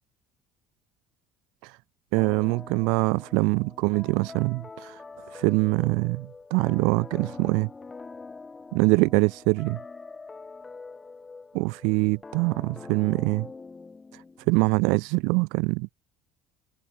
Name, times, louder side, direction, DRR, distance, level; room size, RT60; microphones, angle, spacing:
voice 1, 2.1-4.9 5.3-7.7 8.7-9.8 11.5-13.5 14.5-15.9, right 30 dB, 65° right, 0.5 m, -24 dB
sound 1, 2.2-14.6, left 4 dB, 20° left, 7.8 m, -44 dB
figure-of-eight pair, 60°, 0 cm